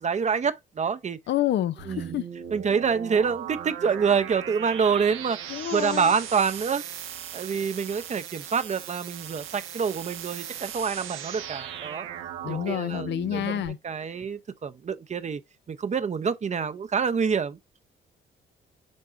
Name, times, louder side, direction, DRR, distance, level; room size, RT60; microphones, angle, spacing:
voice 1, 0.0-1.2 1.9-2.2 2.5-5.4 5.7-6.9 7.3-12.1 12.5-15.4 15.7-17.6, right 6 dB, 35° right, 0.7 m, -27 dB
voice 2, 1.3-2.3 5.5-6.1 12.4-13.8, left 12 dB, 65° left, 0.6 m, -28 dB
sound 1, 1.8-13.7, right 9 dB, 90° right, 1.1 m, -38 dB
10.5 x 3.6 x 2.5 m
cardioid pair, 90°, 20 cm